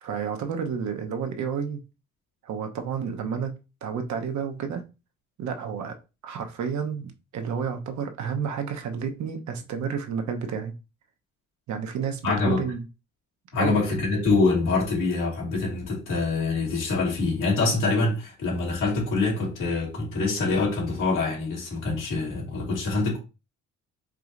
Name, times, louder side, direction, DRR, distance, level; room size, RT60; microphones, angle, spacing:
voice 1, 0.0-1.8 2.4-3.5 3.8-4.8 5.4-6.0 6.2-10.7 11.7-12.8 13.6-13.8, right 6 dB, 70° right, 0.8 m, -30 dB
voice 2, 12.2-12.6 13.5-23.2, left 3 dB, 90° left, 2.1 m, -25 dB
4.9 x 2.9 x 2.5 m
cardioid pair, 90°, 30 cm